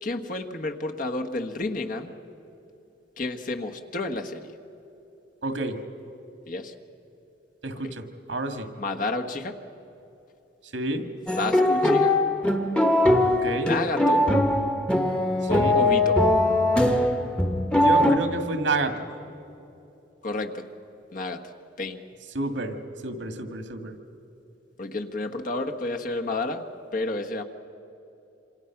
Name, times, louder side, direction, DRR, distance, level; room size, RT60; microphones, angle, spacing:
voice 1, 0.0-2.1 3.2-4.5 6.5-6.7 7.8-7.9 8.8-9.6 11.4-12.2 13.5-14.3 15.5-16.2 20.2-20.6 21.1-21.4 21.8-22.0 24.8-26.6 26.9-27.4, left 2 dB, 45° left, 4 dB, 1.5 m, -30 dB
voice 2, 5.4-5.8 7.6-8.0 8.3-8.7 10.7-11.0 13.2-13.7 15.5-15.8 17.7-19.1 22.3-22.8 23.0-23.9, right 2 dB, 85° right, 7 dB, 2.1 m, -29 dB
sound 1, 11.3-18.2, left 1 dB, 5° left, 1.2 m, -21 dB
27.0 x 26.5 x 6.0 m, 2.9 s
head